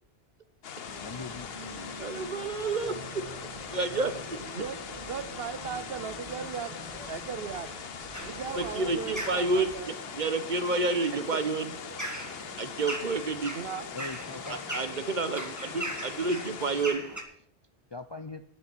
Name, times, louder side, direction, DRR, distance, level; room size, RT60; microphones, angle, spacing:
sound 1, 0.6-16.9, left 8 dB, 70° left, 1.0 m, -42 dB
sound 2, 0.9-9.8, right 2 dB, 30° right, 1.4 m, -46 dB
voice 1, 1.0-2.3 13.9-14.6 17.9-18.4, left 3 dB, 35° left, 10 dB, 0.5 m, -42 dB
voice 2, 2.0-3.3 3.7-4.4 8.6-11.7 12.6-13.5 14.5-17.0, right 3 dB, 50° right, 10 dB, 1.1 m, -30 dB
voice 3, 4.5-6.8 7.1-7.7 8.2-9.9 11.1-11.4 13.5-13.9, right 7 dB, 70° right, 13 dB, 1.0 m, -37 dB
sound 3, 8.1-17.2, right 1 dB, 15° right, 1.8 m, -40 dB
11.0 x 7.5 x 8.3 m, 0.65 s
omnidirectional pair, 1.1 m